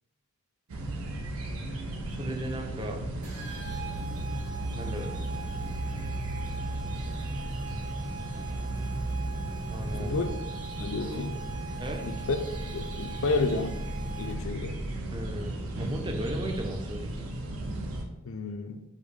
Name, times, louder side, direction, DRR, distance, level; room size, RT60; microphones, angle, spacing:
sound 1, 0.7-18.0, right 1 dB, 70° right, 0.6 m, -35 dB
voice 1, 2.1-3.0 4.7-5.3 9.7-10.2 11.8-12.1 15.1-17.3, right 1 dB, 20° right, 0.5 m, -36 dB
sound 2, 3.2-14.6, right 5 dB, 85° right, 1.0 m, -44 dB
voice 2, 9.9-10.3 10.8-11.4 12.0-12.4 12.7-13.8 14.1-14.8 18.2-18.8, left 3 dB, 60° left, 0.4 m, -31 dB
5.2 x 2.1 x 4.8 m
head